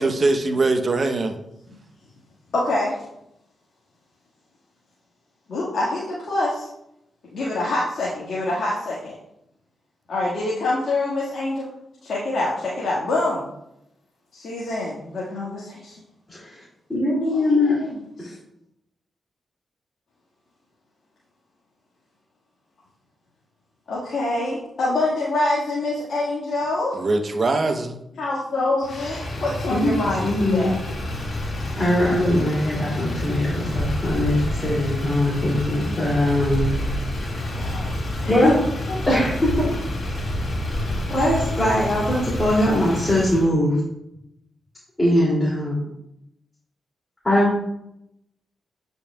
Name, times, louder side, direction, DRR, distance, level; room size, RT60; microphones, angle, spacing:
voice 1, 0.0-1.3 26.9-28.0, right 3 dB, 55° right, 6 dB, 0.8 m, -22 dB
voice 2, 2.5-3.0 5.5-6.7 7.3-9.2 10.1-11.7 12.0-13.4 14.3-16.0 17.2-18.3 23.9-27.0 28.2-30.8 37.4-38.5 38.9-39.0, left 2 dB, 70° left, -7 dB, 1.7 m, -26 dB
voice 3, 16.3-16.6 16.9-17.7 18.2-18.3 29.7-29.9 30.2-30.7 31.8-36.7 38.3-38.6 39.1-39.7 41.1-43.8 45.0-45.9 47.2-47.6, left 1 dB, 25° left, -8 dB, 2.5 m, -21 dB
Motor vehicle (road), 28.8-43.5, left 1 dB, 55° left, 1.9 m, -28 dB
8.5 x 5.3 x 2.3 m, 0.81 s
supercardioid pair, 45°, 0 cm